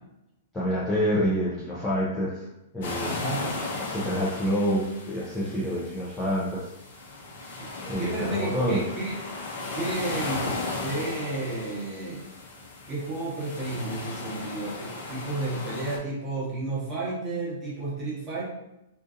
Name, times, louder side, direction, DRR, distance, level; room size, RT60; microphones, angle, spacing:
voice 1, 0.5-2.5 2.7-3.2 3.9-6.7 7.8-8.8, equal, 10° left, -8 dB, 0.5 m, -27 dB
sound 1, 2.8-16.0, left 3 dB, 55° left, 0.8 m, -36 dB
voice 2, 3.0-3.5 7.6-9.1 9.7-12.2 12.9-18.4, right 2 dB, 20° right, -6 dB, 1.0 m, -32 dB
3.8 x 2.6 x 2.5 m, 0.89 s
supercardioid pair, 165°, 0 cm